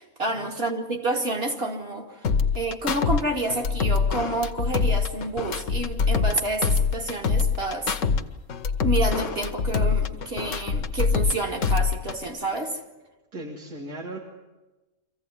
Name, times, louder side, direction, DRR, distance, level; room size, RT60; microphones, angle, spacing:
voice 1, 0.0-2.2 2.5-7.9 8.8-12.8, right 2 dB, 40° right, 2 dB, 2.5 m, -29 dB
sound 1, 2.2-3.2 3.5-6.4 6.6-8.2 8.5-11.3 11.6-12.2, left 5 dB, 60° left, 1.3 m, -24 dB
voice 2, 13.3-14.2, right 1 dB, 85° right, 0 dB, 2.5 m, -37 dB
24.5 x 15.5 x 9.8 m, 1.1 s
omnidirectional pair, 1.5 m